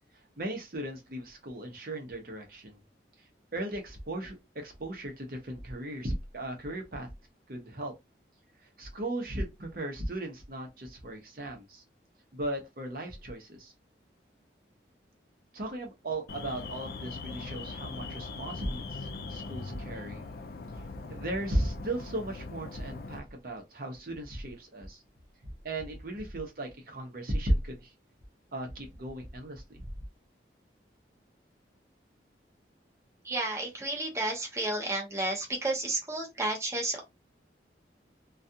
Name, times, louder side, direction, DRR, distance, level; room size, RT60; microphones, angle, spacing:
voice 1, 0.4-2.8 3.5-7.1 7.5-7.9 8.8-11.8 12.3-13.7 15.5-20.2 21.1-25.0 25.4-27.9 28.5-29.9, right 1 dB, 55° right, 0.8 m, -36 dB
Alarm, 16.3-23.2, left 3 dB, 55° left, 0.3 m, -41 dB
voice 2, 33.2-37.0, right 2 dB, 15° right, 0.6 m, -32 dB
2.3 x 2.3 x 2.7 m
head